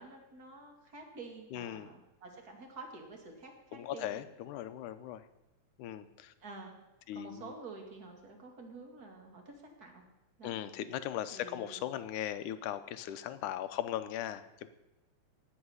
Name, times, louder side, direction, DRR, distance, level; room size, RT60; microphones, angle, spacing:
voice 1, 0.0-4.2 6.4-6.8 7.1-10.1 10.4-10.6 11.3-11.9, right 3 dB, 30° right, 2 dB, 2.6 m, -49 dB
voice 2, 1.5-1.9 3.7-5.3 5.8-6.3 7.1-7.5 10.4-14.7, left 11 dB, 85° left, 12 dB, 2.3 m, -38 dB
17.5 x 5.9 x 9.6 m, 0.99 s
omnidirectional pair, 3.5 m